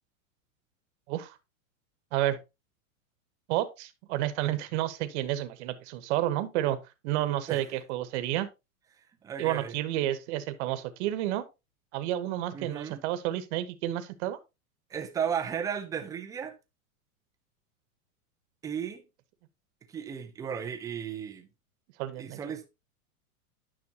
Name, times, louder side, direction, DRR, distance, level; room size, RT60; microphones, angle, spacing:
voice 1, 3.5-6.8 7.0-8.5 9.4-11.5 11.9-14.4 22.0-22.4, right 13 dB, 50° right, 1.1 m, -30 dB
voice 2, 9.2-9.7 12.5-13.0 14.9-16.5 18.6-19.0 19.9-21.5 22.2-22.7, right 8 dB, 10° right, 0.4 m, -34 dB
9.8 x 5.9 x 2.9 m
supercardioid pair, 140°, 43 cm